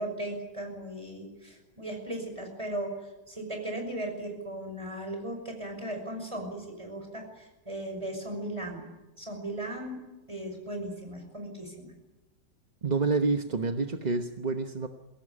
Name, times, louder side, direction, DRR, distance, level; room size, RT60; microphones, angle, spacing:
voice 1, 0.0-2.9 3.3-8.9 9.2-10.0 10.3-11.9, right 1 dB, 15° right, 3 dB, 6.1 m, -37 dB
voice 2, 12.8-14.9, right 4 dB, 30° right, 5 dB, 0.9 m, -28 dB
23.0 x 17.5 x 9.9 m, 1.1 s
omnidirectional pair, 1.9 m